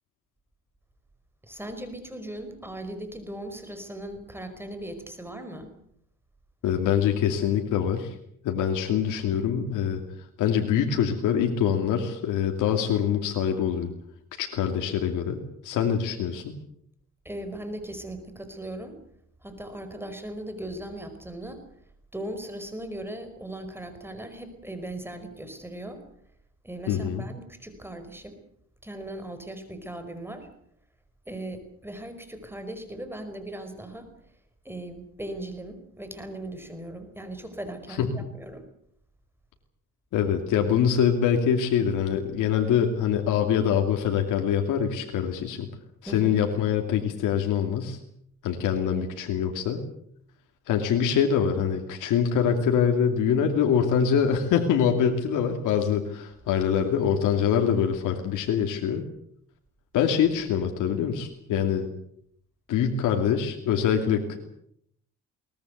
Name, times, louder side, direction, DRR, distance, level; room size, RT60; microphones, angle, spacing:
voice 1, 1.4-5.7 17.2-19.0 19.4-21.6 22.1-26.0 26.6-28.4 28.8-30.5 31.2-34.1 34.6-38.6 46.0-46.4, right 1 dB, 5° right, 8 dB, 5.1 m, -38 dB
voice 2, 6.6-8.1 8.4-10.0 10.4-13.9 14.4-16.5 26.9-27.3 38.0-38.1 40.1-45.7 46.0-48.0 48.4-49.8 50.7-59.0 59.9-61.9 62.7-64.4, left 8 dB, 85° left, 3 dB, 2.7 m, -24 dB
22.5 x 19.5 x 8.1 m, 0.70 s
cardioid pair, 90°, 30 cm